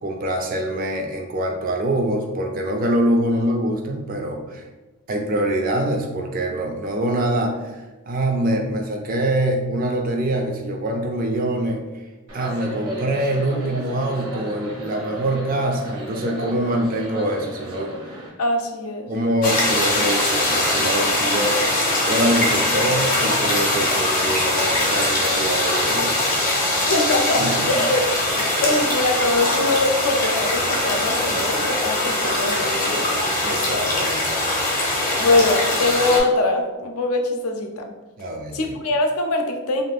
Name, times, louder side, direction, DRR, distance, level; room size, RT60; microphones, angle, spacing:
voice 1, 0.0-4.6 5.1-11.8 12.3-17.9 19.1-26.1 27.4-27.7 33.4-34.3 38.2-38.7, right 1 dB, 40° right, 2 dB, 0.4 m, -24 dB
sound 1, 12.3-18.3, equal, 75° right, 0.9 m, -34 dB
voice 2, 18.4-19.1 26.8-28.1 28.4-33.2 35.2-37.9 38.5-39.8, left 2 dB, 80° left, 4 dB, 0.5 m, -22 dB
sound 2, 19.4-36.2, left 1 dB, 40° left, 0.6 m, -22 dB
2.5 x 2.4 x 3.4 m, 1.1 s
head